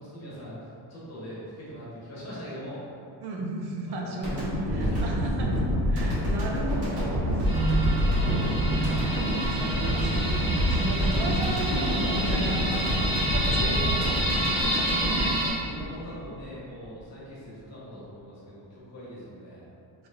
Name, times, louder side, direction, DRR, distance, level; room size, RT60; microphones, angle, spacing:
voice 1, 0.0-2.8 3.9-4.1 4.5-5.2 13.5-19.6, equal, 35° left, -8 dB, 1.4 m, -42 dB
voice 2, 3.2-5.5 5.9-13.9 14.3-14.8 15.1-15.4, right 2 dB, 55° right, 0 dB, 0.6 m, -36 dB
sound 1, 4.2-16.4, equal, 30° right, 1.5 m, -27 dB
sound 2, 7.4-15.5, right 1 dB, 10° right, 1.0 m, -29 dB
4.1 x 3.0 x 2.5 m, 2.6 s
cardioid pair, 135°, 47 cm